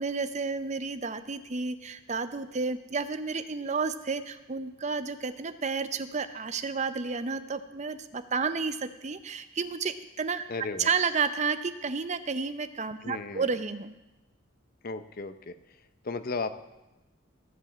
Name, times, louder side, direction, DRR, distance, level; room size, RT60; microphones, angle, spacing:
voice 1, 0.0-10.4 10.8-13.9, right 5 dB, 35° right, 11 dB, 0.6 m, -31 dB
voice 2, 10.5-10.9 13.0-13.5 14.8-15.6 16.0-16.5, left 4 dB, 45° left, 11 dB, 0.7 m, -35 dB
16.0 x 5.4 x 7.4 m, 1.0 s
head